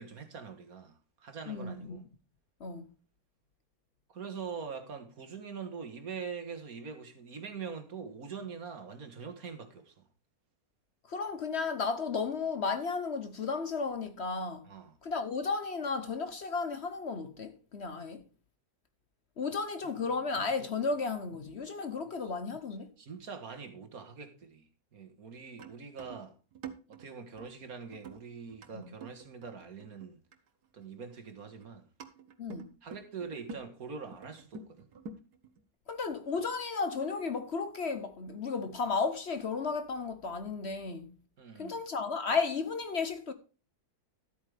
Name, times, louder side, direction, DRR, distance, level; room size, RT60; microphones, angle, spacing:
voice 1, 0.0-2.0 4.1-9.9 14.6-14.9 19.8-20.2 22.2-22.3 23.0-26.3 26.9-30.2 30.7-31.9 32.8-34.9 41.4-41.8, right 5 dB, 65° right, 2.1 m, -44 dB
voice 2, 1.5-2.0 2.6-2.9 11.1-14.7 15.0-18.2 19.4-22.9 28.7-28.9 32.4-32.8 35.9-41.2 41.6-43.3, left 4 dB, 50° left, 1.0 m, -34 dB
sound 1, 25.3-30.5 30.8-30.9 31.3-31.7 32.0-33.6 34.1-35.6, right 5 dB, 85° right, 1.8 m, -48 dB
13.0 x 8.6 x 3.4 m
omnidirectional pair, 1.7 m